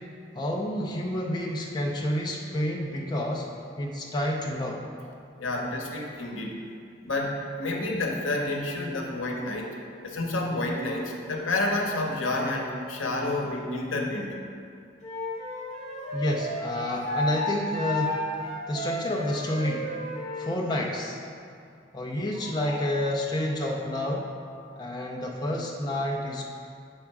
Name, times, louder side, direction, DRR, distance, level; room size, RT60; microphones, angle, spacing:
voice 1, 0.3-3.5 3.8-4.8 16.1-18.3 18.7-19.9 20.4-21.2 21.9-24.3 24.8-26.4, left 1 dB, 20° left, -2 dB, 0.4 m, -29 dB
voice 2, 5.4-6.6 7.0-14.4 22.4-22.8, left 2 dB, 90° left, 1 dB, 0.8 m, -30 dB
Wind instrument woodwind instrument, 15.0-20.5, left 2 dB, 35° left, 1.1 m, -32 dB
6.4 x 3.5 x 4.6 m, 2.4 s
head